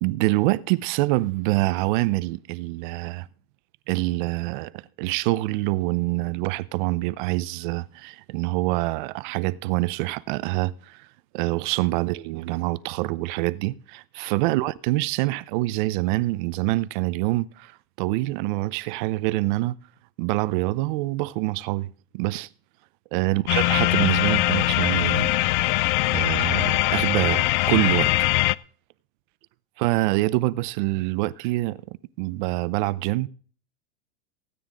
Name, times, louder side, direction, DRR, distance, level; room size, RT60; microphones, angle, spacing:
voice 1, 0.0-3.3 3.9-11.0 11.3-17.7 18.0-19.8 20.2-21.9 22.1-22.5 23.1-25.3 26.1-28.3 29.8-33.3, right 20 dB, 50° right, 0.7 m, -25 dB
sound 1, 23.5-28.5, left 19 dB, 55° left, 0.4 m, -22 dB
16.5 x 9.4 x 3.8 m
supercardioid pair, 140°, 31 cm